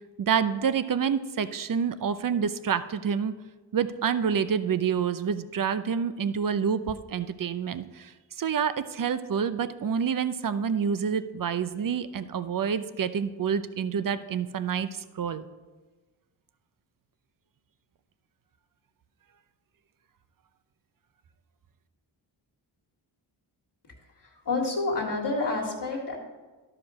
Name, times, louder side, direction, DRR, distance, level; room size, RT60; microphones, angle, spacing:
voice 1, 0.2-3.3 3.7-8.1 8.4-14.9 15.2-15.5, right 7 dB, 45° right, 13 dB, 0.6 m, -28 dB
voice 2, 24.2-26.2, left 3 dB, 60° left, -4 dB, 2.0 m, -29 dB
11.5 x 5.1 x 6.2 m, 1.3 s
cardioid pair, 75°, 48 cm